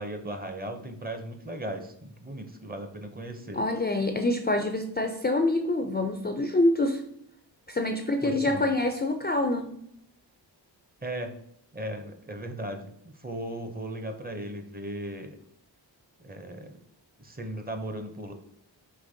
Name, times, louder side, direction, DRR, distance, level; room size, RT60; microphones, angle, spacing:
voice 1, 0.0-3.6 8.2-8.7 11.0-11.3 11.7-15.4 16.2-16.8 17.2-18.3, right 1 dB, 20° right, 6 dB, 0.6 m, -37 dB
voice 2, 3.5-7.0 7.7-9.7, left 2 dB, 25° left, 5 dB, 0.4 m, -26 dB
5.1 x 3.0 x 2.6 m, 0.71 s
cardioid pair, 55°, 44 cm